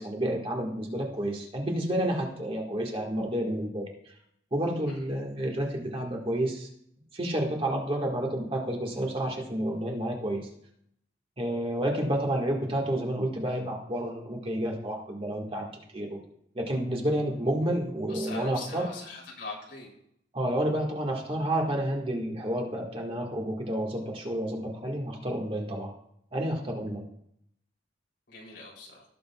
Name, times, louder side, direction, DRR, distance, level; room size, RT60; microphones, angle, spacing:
voice 1, 0.0-4.1 4.5-6.7 7.1-10.5 11.4-15.7 15.9-16.2 16.5-18.9 20.3-25.9 26.3-27.1, right 1 dB, 30° right, 0 dB, 1.6 m, -30 dB
voice 2, 18.1-19.9 28.3-29.0, left 3 dB, 85° left, -3 dB, 3.2 m, -42 dB
18.0 x 6.7 x 2.3 m, 0.72 s
head